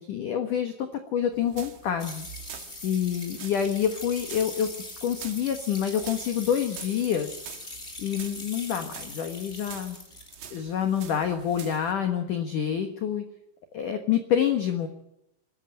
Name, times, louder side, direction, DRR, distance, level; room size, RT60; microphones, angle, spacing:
voice 1, 0.1-2.3 2.8-4.7 5.0-7.4 8.0-10.0 10.5-13.2 13.7-14.9, left 8 dB, 70° left, 7 dB, 1.9 m, -27 dB
sound 1, 1.3-11.9, right 9 dB, 60° right, 3.3 m, -46 dB
sound 2, 2.0-10.5, left 2 dB, 20° left, 2.1 m, -41 dB
22.5 x 13.0 x 8.8 m, 0.83 s
omnidirectional pair, 5.9 m